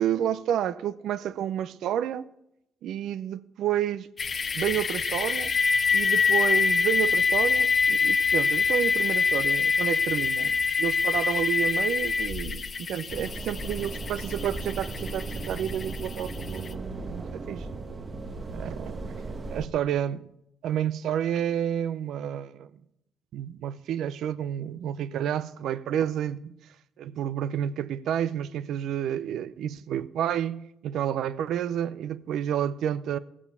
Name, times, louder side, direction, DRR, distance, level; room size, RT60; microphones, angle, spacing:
voice 1, 0.0-2.3 2.8-4.1 4.5-5.5 5.9-17.7 18.5-19.0 19.5-20.3 20.6-22.7 23.3-26.6 27.0-33.2, right 10 dB, 75° right, 0.6 m, -30 dB
sound 1, 4.2-16.7, left 5 dB, 40° left, 0.7 m, -25 dB
sound 2, 13.1-19.7, right 3 dB, 40° right, 1.2 m, -36 dB
16.5 x 7.2 x 6.8 m
cardioid pair, 90°, 0 cm